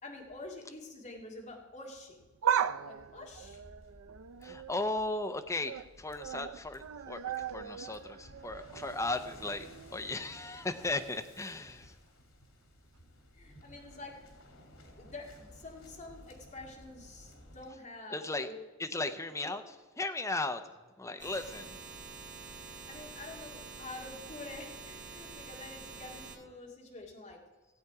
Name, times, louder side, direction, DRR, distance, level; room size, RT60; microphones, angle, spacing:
voice 1, 0.0-2.2 2.8-3.6 13.3-14.2 15.0-18.6 19.2-19.5 22.6-27.4, left 2 dB, 35° left, -1 dB, 2.0 m, -47 dB
sound 1, 2.2-5.0 5.4-5.9 6.2-10.1 10.5-10.6 11.6-11.7, right 9 dB, 75° right, 0.4 m, -37 dB
Waves surf, 2.9-17.7, left 1 dB, 85° left, 2.5 m, -56 dB
voice 2, 4.4-7.2 7.5-11.9 18.1-18.5 18.8-19.6 20.0-20.6 21.0-21.8, left 2 dB, 15° left, 7 dB, 0.6 m, -36 dB
sound 2, 21.2-26.4, right 4 dB, 35° right, 1.9 m, -47 dB
16.0 x 8.1 x 4.8 m, 1.3 s
head